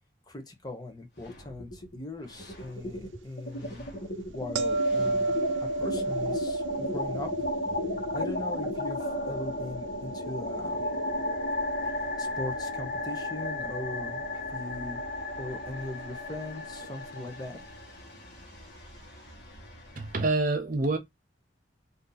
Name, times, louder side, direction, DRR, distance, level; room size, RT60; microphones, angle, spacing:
voice 1, 0.3-3.9 4.3-7.5 8.1-10.9 11.8-15.0 15.4-17.6, left 2 dB, 20° left, 0.7 m, -40 dB
sound 1, 1.2-2.0 2.3-20.3, left 1 dB, 55° left, 1.4 m, -35 dB
sound 2, 4.6-11.5 16.8-17.0, right 2 dB, 85° right, 0.7 m, -33 dB
voice 2, 20.0-21.0, right 2 dB, 45° right, 0.6 m, -26 dB
2.7 x 2.7 x 3.7 m
head